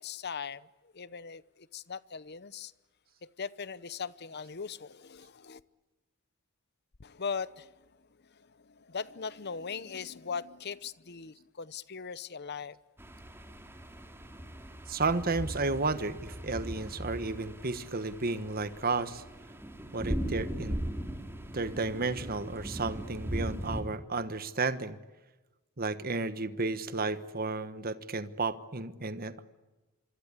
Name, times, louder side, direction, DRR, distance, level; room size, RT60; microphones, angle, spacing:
voice 1, 0.0-1.4 1.7-2.7 3.2-5.6 7.0-7.9 8.2-12.8, left 6 dB, 45° left, 0.8 m, -40 dB
sound 1, 13.0-23.8, equal, 10° right, 2.7 m, -39 dB
voice 2, 14.9-19.2 19.9-20.8 21.5-25.0 25.8-29.4, right 3 dB, 40° right, 1.2 m, -32 dB
26.0 x 25.5 x 8.4 m
head